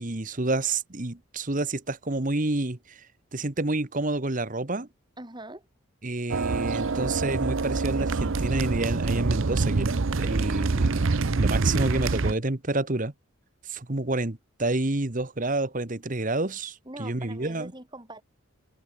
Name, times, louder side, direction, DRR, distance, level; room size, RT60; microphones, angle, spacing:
voice 1, 0.0-3.0 3.3-4.9 6.0-13.1 13.6-17.7, right 2 dB, 40° right, 1.4 m, -29 dB
voice 2, 5.2-5.7 16.8-18.2, right 1 dB, 20° right, 4.4 m, -42 dB
sound 1, 6.3-12.3, right 3 dB, 70° right, 0.7 m, -26 dB
head